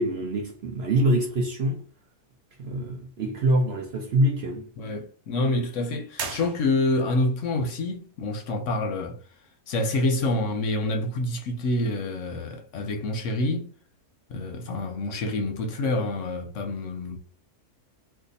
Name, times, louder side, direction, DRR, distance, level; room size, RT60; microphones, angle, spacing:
voice 1, 0.0-1.8 2.6-4.7, right 1 dB, 60° right, 0.7 m, -25 dB
voice 2, 4.8-9.2 9.7-13.7 14.3-17.2, left 2 dB, 65° left, 0.9 m, -27 dB
sound 1, 6.1-7.2, right 5 dB, 75° right, 1.2 m, -36 dB
2.6 x 2.6 x 3.9 m
omnidirectional pair, 1.6 m